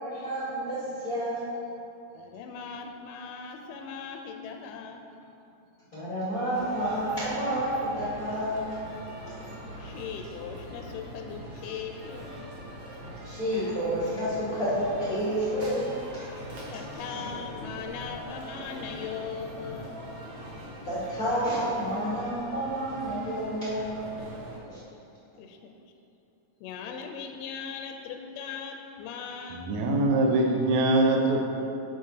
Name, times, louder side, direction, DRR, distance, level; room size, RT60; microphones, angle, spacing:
voice 1, 0.0-1.5 5.9-8.8 13.2-16.3 16.9-17.0 20.8-24.2 24.7-24.8 25.3-25.4, equal, 45° left, -10 dB, 1.1 m, -30 dB
voice 2, 2.1-5.1 9.8-12.4 16.7-20.0 25.4-25.8 26.6-29.7, left 6 dB, 80° left, 4 dB, 2.1 m, -39 dB
sound 1, 6.5-24.6, equal, 55° right, 1.6 m, -42 dB
voice 3, 29.5-31.5, right 2 dB, 75° right, 0 dB, 1.9 m, -23 dB
9.1 x 7.3 x 2.8 m, 2.8 s
omnidirectional pair, 3.9 m